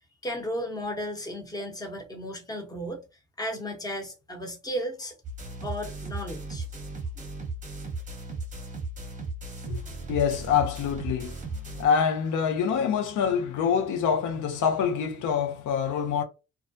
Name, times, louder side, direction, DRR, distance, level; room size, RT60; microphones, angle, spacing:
voice 1, 0.2-3.0 3.4-5.1 5.6-6.6, equal, 10° left, 0.8 m, -34 dB
sound 1, 5.2-11.9, right 2 dB, 25° right, 0.9 m, -36 dB
voice 2, 10.1-11.4 11.8-16.2, left 7 dB, 85° left, 0.6 m, -25 dB
2.3 x 2.1 x 2.5 m
cardioid pair, 90°, 30 cm